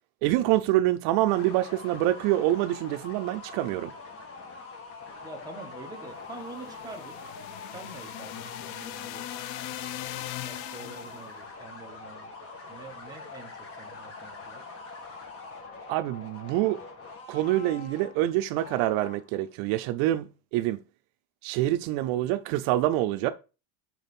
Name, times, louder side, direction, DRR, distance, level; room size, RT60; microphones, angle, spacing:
voice 1, 0.2-3.9 15.9-16.8 17.3-20.8 21.4-23.3, right 15 dB, 70° right, 0.7 m, -26 dB
sound 1, 1.3-19.4, left 3 dB, 30° left, 1.5 m, -44 dB
voice 2, 5.2-7.2 7.7-9.3 10.0-12.3 12.7-14.7, right 2 dB, 10° right, 1.1 m, -46 dB
sound 2, 6.4-11.3, left 16 dB, 75° left, 0.6 m, -40 dB
6.2 x 4.0 x 5.3 m
cardioid pair, 165°, 48 cm